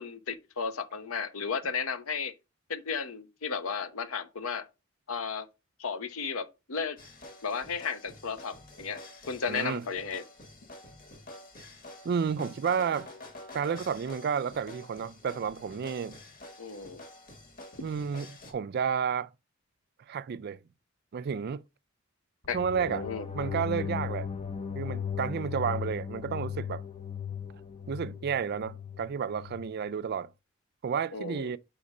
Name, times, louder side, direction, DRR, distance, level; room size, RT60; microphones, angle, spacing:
voice 1, 0.0-2.3 2.7-4.6 5.1-5.5 5.8-7.0 7.4-9.0 9.3-10.2 16.6-17.0 22.5-23.3 31.1-31.5, left 5 dB, 85° left, 0.8 m, -34 dB
sound 1, 7.0-18.5, left 1 dB, 45° left, 1.7 m, -48 dB
voice 2, 9.5-9.9 12.0-13.1 13.5-16.2 17.8-19.3 20.1-20.6 21.1-21.6 22.5-23.1 23.3-24.3 24.8-26.8 27.9-30.3 30.8-31.6, right 6 dB, 50° right, 0.4 m, -31 dB
sound 2, 22.4-29.7, left 7 dB, 30° left, 0.5 m, -37 dB
5.0 x 4.9 x 5.3 m
head